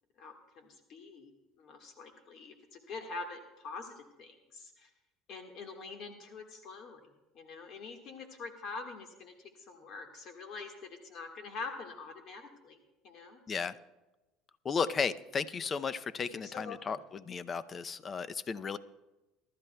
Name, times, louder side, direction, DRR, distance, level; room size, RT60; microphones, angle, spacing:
voice 1, 0.2-1.3 1.6-4.9 5.3-7.1 7.3-12.8 13.0-13.4 16.3-16.8, left 4 dB, 55° left, 4 dB, 1.6 m, -45 dB
voice 2, 14.6-18.8, left 5 dB, 30° left, 15 dB, 0.6 m, -34 dB
23.0 x 12.0 x 2.3 m, 1.1 s
supercardioid pair, 100°, 0 cm